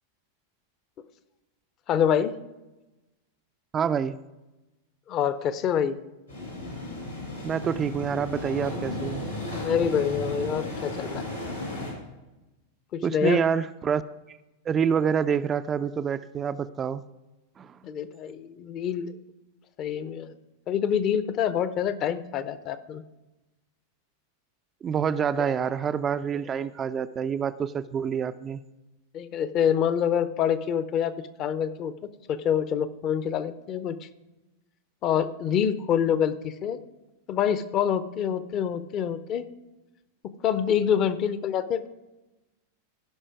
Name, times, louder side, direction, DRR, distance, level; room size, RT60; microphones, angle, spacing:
voice 1, 1.9-2.3 5.1-6.0 9.5-11.2 12.9-13.4 17.8-19.1 19.8-20.3 20.7-23.0 29.1-31.1 31.4-31.9 32.3-34.0 35.0-36.8 37.3-39.4 40.4-41.9, left 8 dB, 35° left, 14 dB, 0.7 m, -26 dB
voice 2, 3.7-4.2 7.4-9.3 13.0-14.0 14.3-14.4 14.7-17.0 17.6-17.8 24.8-28.6, right 7 dB, 25° right, 12 dB, 0.3 m, -27 dB
sound 1, 6.3-11.9, left 1 dB, 90° left, 4.5 m, -34 dB
16.0 x 5.6 x 4.7 m, 1.0 s
figure-of-eight pair, 90°, 0 cm